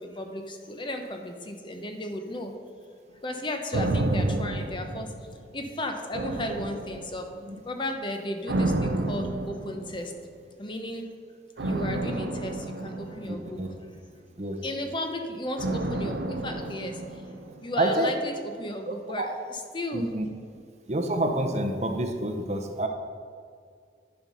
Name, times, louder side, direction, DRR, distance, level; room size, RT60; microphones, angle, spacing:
voice 1, 0.0-2.5 3.2-5.1 5.5-7.3 7.6-10.1 10.6-11.0 11.6-13.6 14.6-17.0 17.6-20.1 20.6-20.7, left 1 dB, 30° left, 4 dB, 0.8 m, -34 dB
sound 1, 3.7-5.6 6.1-7.4 8.5-10.2 11.6-14.0 15.6-17.8 18.0-18.1, right 2 dB, 75° right, 0.6 m, -30 dB
voice 2, 13.3-13.7 14.4-14.6 17.8-18.1 18.9-19.2 19.9-20.3 20.9-22.9, right 1 dB, 40° right, 4 dB, 0.8 m, -28 dB
10.0 x 5.5 x 5.3 m, 2.1 s
head